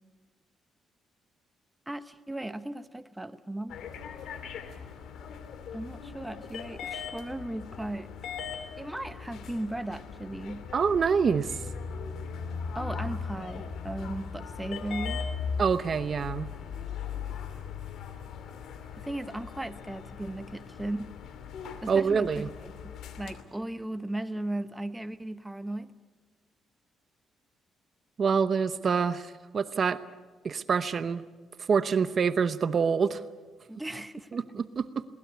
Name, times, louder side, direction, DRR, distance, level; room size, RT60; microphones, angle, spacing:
voice 1, 1.9-3.8 5.7-8.1 8.8-10.7 12.7-15.2 19.0-21.2 21.8-25.9 33.7-34.7, right 1 dB, 10° right, 11 dB, 1.0 m, -37 dB
sound 1, 3.7-23.4, left 6 dB, 75° left, 2.5 m, -39 dB
voice 2, 10.7-11.5 15.6-16.5 21.9-22.5 28.2-30.0 30.4-31.2 31.7-33.2 34.3-34.9, right 6 dB, 45° right, 13 dB, 0.9 m, -26 dB
22.0 x 19.5 x 8.2 m, 1.4 s
cardioid pair, 90°, 0 cm